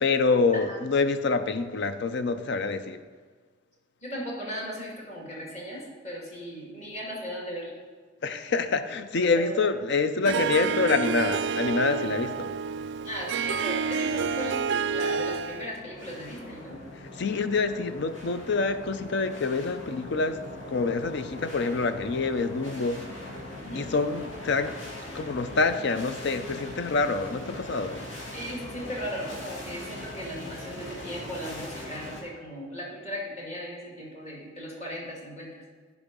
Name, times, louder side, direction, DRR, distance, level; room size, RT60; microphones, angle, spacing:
voice 1, 0.0-3.0 8.2-12.5 17.2-20.4 20.7-23.1 23.7-24.8 25.1-28.0, left 4 dB, 65° left, 10 dB, 0.6 m, -26 dB
voice 2, 4.0-7.8 9.4-9.5 13.0-14.6 14.9-16.8 23.6-23.9 28.3-35.6, equal, 35° left, -3 dB, 2.3 m, -37 dB
Harp, 10.2-15.7, right 5 dB, 65° right, 0.3 m, -29 dB
sound 1, 15.5-32.2, left 1 dB, 85° left, 2.3 m, -41 dB
10.5 x 4.9 x 5.4 m, 1.5 s
head